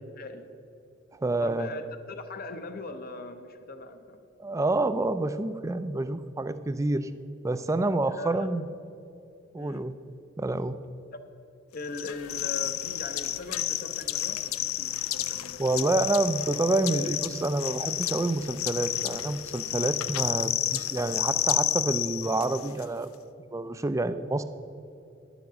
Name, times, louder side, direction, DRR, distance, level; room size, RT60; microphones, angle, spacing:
voice 1, 0.2-0.5 1.4-4.2 8.1-8.6 9.5-9.9 11.1-11.2 11.7-15.6, left 2 dB, 45° left, 8 dB, 0.7 m, -40 dB
voice 2, 1.2-1.7 4.4-7.1 7.4-8.6 9.5-9.9 10.4-10.8 15.6-23.1 23.5-24.4, right 2 dB, 15° right, 12 dB, 0.3 m, -28 dB
sound 1, 11.9-22.8, left 13 dB, 85° left, 0.4 m, -31 dB
11.0 x 7.1 x 6.2 m, 2.7 s
head